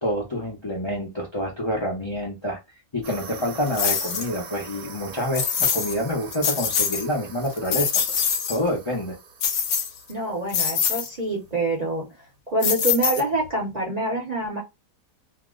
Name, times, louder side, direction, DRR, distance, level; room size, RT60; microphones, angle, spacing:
voice 1, 0.0-2.6 2.9-9.2, equal, 45° left, 0.3 m, -27 dB
sound 1, 3.0-11.2, right 5 dB, 65° right, 1.2 m, -43 dB
sound 2, 3.7-4.3 5.3-6.0 6.3-7.1 7.5-8.6 9.4-10.1 10.5-11.1 12.6-13.5, left 7 dB, 65° left, 0.9 m, -24 dB
voice 2, 10.1-12.1 12.5-14.6, right 1 dB, 40° right, 0.6 m, -26 dB
2.8 x 2.1 x 3.6 m
omnidirectional pair, 1.8 m